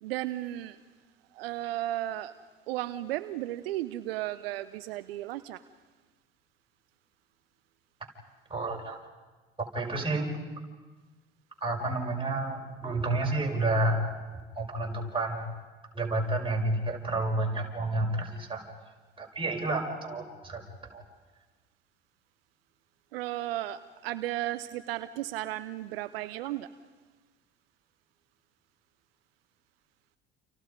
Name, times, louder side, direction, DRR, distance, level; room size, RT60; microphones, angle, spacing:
voice 1, 0.0-0.8 1.3-2.3 2.7-5.6 23.1-26.7, right 15 dB, 75° right, 13 dB, 0.7 m, -34 dB
voice 2, 8.5-9.0 9.7-10.4 11.6-14.1 14.6-15.5 15.9-18.6 19.2-20.6 20.9-21.0, right 2 dB, 15° right, -1 dB, 5.7 m, -30 dB
29.5 x 29.0 x 5.3 m, 1.3 s
hypercardioid pair, 65°, 30 cm